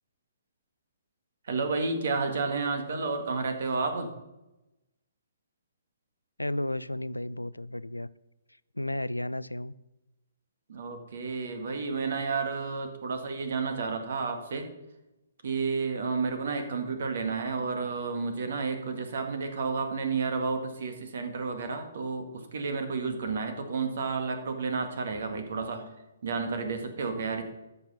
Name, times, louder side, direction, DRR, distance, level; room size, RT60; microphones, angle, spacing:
voice 1, 1.4-4.1 10.7-14.7 15.4-25.8 26.2-27.4, right 4 dB, 55° right, 6 dB, 1.9 m, -31 dB
voice 2, 6.4-8.1 8.8-9.7, left 1 dB, 90° left, 18 dB, 0.4 m, -33 dB
13.5 x 5.8 x 6.0 m, 0.97 s
figure-of-eight pair, 130°, 0 cm